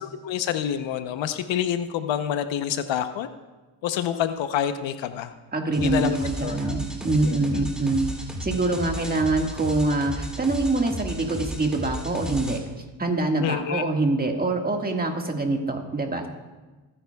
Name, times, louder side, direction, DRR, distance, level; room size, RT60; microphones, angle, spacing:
voice 1, 0.0-3.3 3.8-5.3 5.8-6.2 6.4-6.8 7.2-7.5 13.4-13.8, left 10 dB, 70° left, 10 dB, 0.9 m, -27 dB
voice 2, 5.5-8.1 8.4-12.6 13.0-16.3, right 2 dB, 20° right, 3 dB, 1.8 m, -25 dB
sound 1, 5.7-12.6, right 1 dB, ahead, 2.6 m, -34 dB
22.0 x 10.0 x 2.3 m, 1.2 s
cardioid pair, 80°, 48 cm